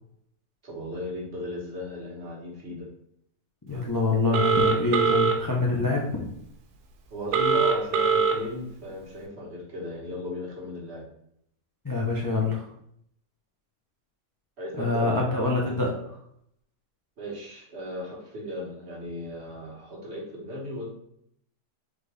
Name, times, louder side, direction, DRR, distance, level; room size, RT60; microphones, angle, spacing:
voice 1, 0.6-2.9 7.1-11.0 14.6-15.2 17.2-21.0, left 1 dB, 45° right, -3 dB, 1.4 m, -36 dB
voice 2, 3.7-6.3 11.8-12.7 14.8-16.2, left 3 dB, 35° left, -3 dB, 0.3 m, -25 dB
Telephone, 4.3-5.3 7.3-8.3, right 5 dB, 85° right, 1.2 m, -22 dB
4.1 x 3.3 x 3.3 m, 0.71 s
omnidirectional pair, 1.6 m